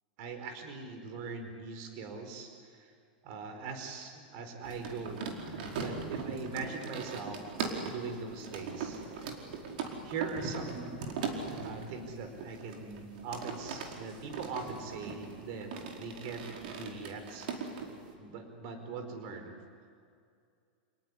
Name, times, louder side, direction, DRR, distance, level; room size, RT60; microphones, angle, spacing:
voice 1, 0.2-2.9 3.2-7.4 7.8-9.0 10.0-11.2 11.6-17.9 18.2-19.5, right 4 dB, 50° right, 6 dB, 4.7 m, -41 dB
sound 1, 4.6-18.1, right 5 dB, 70° right, 4.6 m, -40 dB
29.5 x 19.5 x 10.0 m, 2.3 s
supercardioid pair, 140°, 5 cm